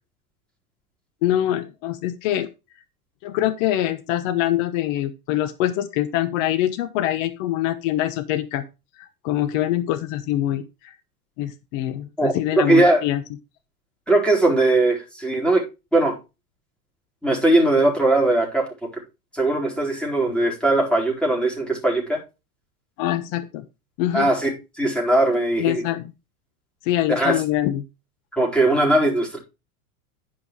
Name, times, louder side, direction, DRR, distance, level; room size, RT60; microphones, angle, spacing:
voice 1, 1.2-2.5 3.2-8.6 9.0-10.9 11.4-13.2 23.0-23.6 24.0-24.3 25.6-26.1 26.8-27.8, left 13 dB, 60° left, 11 dB, 1.1 m, -24 dB
voice 2, 12.2-13.0 14.1-15.6 15.9-16.2 17.2-18.7 19.3-22.2 24.1-25.8 27.1-27.4 28.3-29.4, right 2 dB, ahead, -1 dB, 4.4 m, -20 dB
10.0 x 5.8 x 4.6 m, 0.27 s
supercardioid pair, 120°, 45 cm